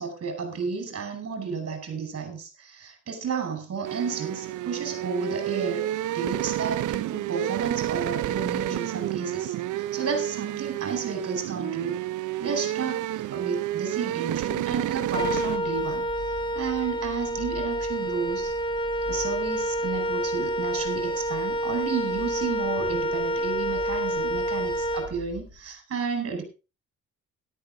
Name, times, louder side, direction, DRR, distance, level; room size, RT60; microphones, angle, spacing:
voice 1, 0.0-5.9 6.1-12.0 12.4-13.0 13.3-16.1 16.5-18.5 19.1-26.4, right 5 dB, 50° right, 5 dB, 5.8 m, -32 dB
sound 1, 3.8-15.6, right 14 dB, 80° right, 0.7 m, -30 dB
Wind instrument woodwind instrument, 15.1-25.5, right 1 dB, 15° left, 2.8 m, -28 dB
13.0 x 12.0 x 3.9 m, 0.31 s
cardioid pair, 90°, 30 cm